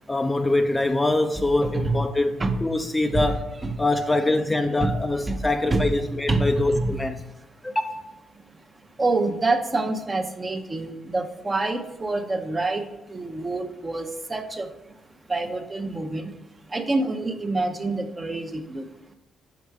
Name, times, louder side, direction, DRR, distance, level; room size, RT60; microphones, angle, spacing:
voice 1, 0.1-3.4 3.8-7.1 7.6-8.0, left 2 dB, 15° left, 0.3 m, -24 dB
voice 2, 1.4-2.0 2.4-2.6 3.1-3.4 3.6-3.8 4.8-5.0 5.2-5.4 5.7-7.0 9.0-12.8 13.1-14.7 15.3-16.3 16.7-18.8, right 2 dB, 25° right, 0.7 m, -26 dB
5.6 x 4.9 x 4.7 m
cardioid pair, 90°, 0 cm